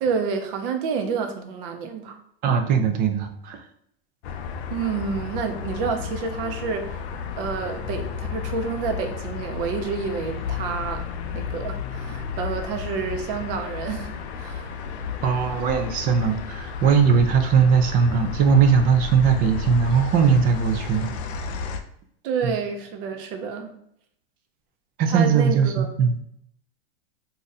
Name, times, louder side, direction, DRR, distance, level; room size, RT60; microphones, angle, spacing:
voice 1, 0.0-2.2 4.7-7.0 7.4-14.8 22.2-23.7 25.1-25.9, right 5 dB, 55° right, 5 dB, 0.7 m, -29 dB
voice 2, 2.4-3.6 15.2-21.1 22.4-22.5 25.0-26.2, right 6 dB, 30° right, 6 dB, 0.4 m, -19 dB
sound 1, 4.2-21.8, left 6 dB, 80° left, 0.5 m, -33 dB
2.7 x 2.4 x 4.0 m, 0.71 s
supercardioid pair, 135°, 32 cm